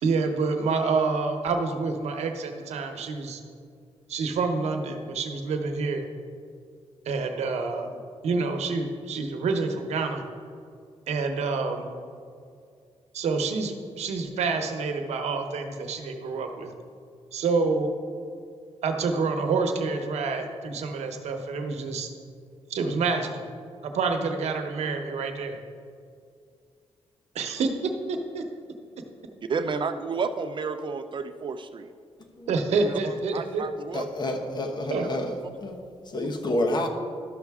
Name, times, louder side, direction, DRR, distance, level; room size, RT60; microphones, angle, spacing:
voice 1, 0.0-3.4 4.1-6.1 7.1-10.2 11.1-11.9 13.1-16.7 17.3-17.9 18.8-22.1 22.7-23.5 23.8-25.6 27.3-27.7 28.1-28.4 32.5-33.6 34.9-35.1, right 4 dB, 85° right, 5 dB, 0.9 m, -27 dB
voice 2, 29.5-31.9 32.8-34.1, right 5 dB, 45° right, 9 dB, 0.5 m, -31 dB
voice 3, 33.9-35.8 36.1-36.9, left 1 dB, 40° left, 4 dB, 1.1 m, -29 dB
12.5 x 6.5 x 3.6 m, 2.3 s
cardioid pair, 105°, 11 cm